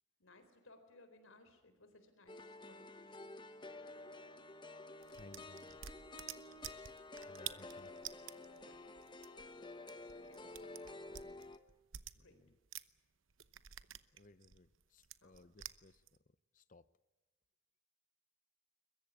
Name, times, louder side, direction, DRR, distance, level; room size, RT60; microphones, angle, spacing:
voice 1, 0.2-3.3 8.5-8.8 10.0-11.0 12.2-12.4 15.2-15.5, left 2 dB, 85° left, 4.1 m, -63 dB
sound 1, 2.3-11.6, left 2 dB, 25° left, 1.1 m, -51 dB
sound 2, 5.0-13.0 13.3-16.2, right 11 dB, 75° right, 0.9 m, -50 dB
voice 2, 5.1-5.8 7.3-7.9 8.6-8.7 11.1-11.5 12.1-12.6 14.1-16.9, left 2 dB, 40° left, 0.7 m, -62 dB
22.0 x 22.0 x 8.5 m
head